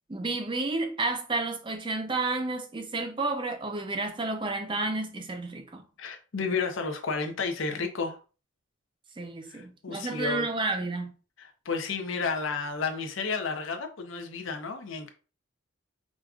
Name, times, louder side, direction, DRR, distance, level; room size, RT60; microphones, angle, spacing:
voice 1, 0.1-5.8 9.2-11.1, right 3 dB, 25° right, 0.5 m, -31 dB
voice 2, 6.0-8.2 9.5-10.5 11.4-15.1, left 4 dB, 70° left, 0.6 m, -32 dB
5.0 x 2.4 x 2.4 m
head